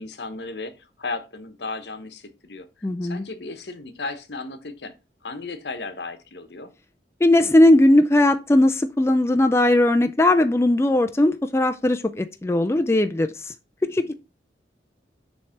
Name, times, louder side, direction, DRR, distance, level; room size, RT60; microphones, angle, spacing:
voice 1, 0.0-2.7 3.0-4.9 5.2-6.7 13.8-14.1, left 3 dB, 75° left, 1.0 m, -35 dB
voice 2, 2.8-3.2 7.2-13.5 13.8-14.1, left 1 dB, 15° left, 0.4 m, -18 dB
7.1 x 3.3 x 5.7 m
head